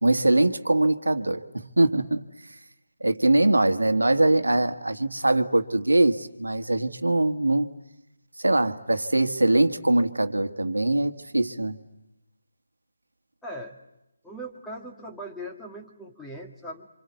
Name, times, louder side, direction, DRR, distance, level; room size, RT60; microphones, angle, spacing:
voice 1, 0.0-2.3 3.0-7.7 8.4-11.8, right 2 dB, 80° right, 8 dB, 1.6 m, -22 dB
voice 2, 13.4-13.8 14.2-16.9, equal, 5° left, 0 dB, 2.1 m, -39 dB
27.5 x 26.0 x 8.1 m, 0.89 s
figure-of-eight pair, 150°, 0 cm